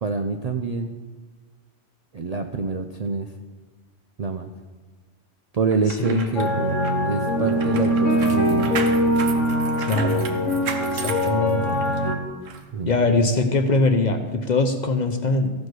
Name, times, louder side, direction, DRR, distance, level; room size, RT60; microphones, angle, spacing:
voice 1, 0.0-0.9 2.1-3.3 4.2-4.5 5.5-8.8 11.7-12.0 12.7-12.9, right 4 dB, 55° right, 5 dB, 0.4 m, -26 dB
sound 1, 5.7-12.0 12.4-12.6, right 6 dB, 85° right, 1.3 m, -35 dB
voice 2, 6.0-6.3 9.8-10.2 10.9-11.7 12.9-15.5, left 2 dB, 45° left, 6 dB, 0.7 m, -22 dB
sound 2, 6.4-12.2, equal, 85° left, 1.7 m, -22 dB
14.5 x 5.2 x 6.1 m, 1.4 s
omnidirectional pair, 1.3 m